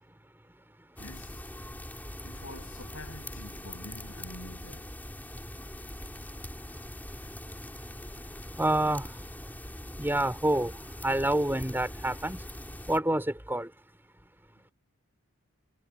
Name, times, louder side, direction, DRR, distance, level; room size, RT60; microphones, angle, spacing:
voice 1, 1.0-1.4 2.2-5.0 7.9-8.0, left 1 dB, 70° left, 7.5 m, -47 dB
sound 1, 1.0-13.0, left 1 dB, 10° left, 4.1 m, -42 dB
voice 2, 8.6-9.3 10.0-12.5 12.9-13.7, right 1 dB, 10° right, 3.6 m, -28 dB
head